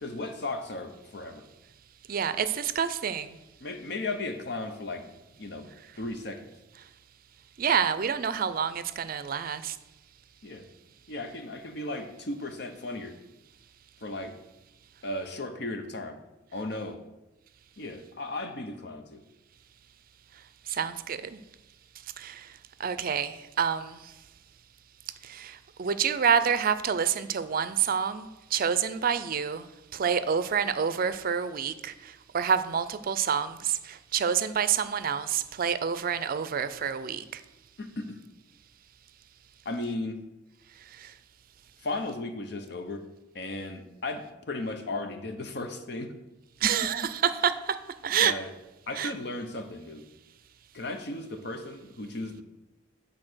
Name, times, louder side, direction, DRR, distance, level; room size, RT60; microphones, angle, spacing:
voice 1, 0.0-1.4 3.6-5.1 5.4-5.7 6.0-6.5 10.4-10.6 11.1-13.2 14.0-14.3 15.0-16.2 16.5-17.0 17.8-19.2 37.8-38.2 39.6-40.2 41.8-43.0 43.3-46.1 46.6-47.1 48.1-48.5 48.9-50.0 50.7-52.4, left 2 dB, 65° left, 7 dB, 0.8 m, -35 dB
voice 2, 2.1-3.4 7.6-9.8 20.7-21.4 22.2-22.5 22.8-24.0 25.2-29.7 29.9-37.4 41.0-41.1 46.6-47.8 48.0-48.3 49.0-49.1, right 7 dB, 50° right, 13 dB, 0.4 m, -28 dB
8.7 x 4.0 x 6.2 m, 0.99 s
head